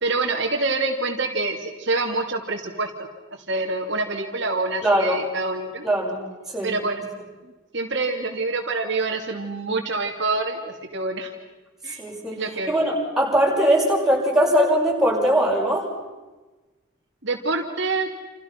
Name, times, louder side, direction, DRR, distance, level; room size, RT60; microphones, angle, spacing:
voice 1, 0.0-3.1 3.5-5.8 6.6-7.1 7.4-11.3 11.8-12.0 12.3-12.7 17.2-18.1, right 3 dB, 55° right, 1 dB, 2.6 m, -26 dB
voice 2, 4.8-5.2 5.8-6.2 6.5-6.7 12.0-15.9, equal, ahead, -3 dB, 6.5 m, -21 dB
29.5 x 28.5 x 5.9 m, 1.2 s
head